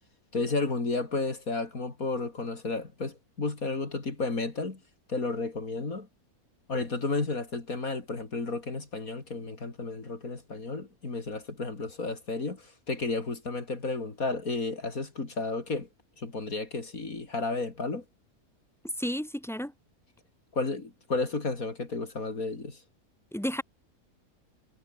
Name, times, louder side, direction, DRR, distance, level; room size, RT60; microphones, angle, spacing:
voice 1, 0.3-4.8 5.1-6.1 6.7-15.9 16.2-18.0 20.5-22.8, left 3 dB, 70° left, 3.9 m, -32 dB
voice 2, 19.0-19.7 23.3-23.6, equal, ahead, 5.9 m, -32 dB
omnidirectional pair, 1.5 m